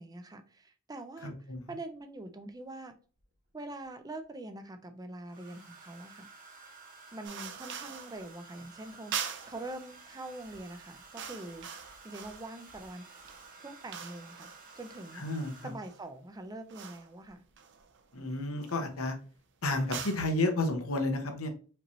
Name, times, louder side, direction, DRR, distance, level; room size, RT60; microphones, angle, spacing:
voice 1, 0.0-2.9 3.5-6.3 7.1-11.7 12.0-13.0 13.6-14.5 14.8-15.2 15.6-17.4, right 2 dB, 20° right, 8 dB, 0.4 m, -44 dB
voice 2, 1.2-1.6 15.2-15.7 18.1-19.2 19.6-21.5, left 2 dB, 80° left, 5 dB, 1.0 m, -31 dB
Domestic sounds home sounds, 3.2-3.8 5.3-16.0 17.2-17.5 17.8-18.1, right 4 dB, 40° right, 1.1 m, -53 dB
sound 1, 7.2-8.2 9.1-9.7 10.4-10.6 10.9-12.6 13.0-16.0 16.7-17.1 17.6-18.1 18.6-18.9 19.8-20.3, right 8 dB, 60° right, 0.6 m, -42 dB
5.1 x 2.8 x 3.0 m, 0.38 s
head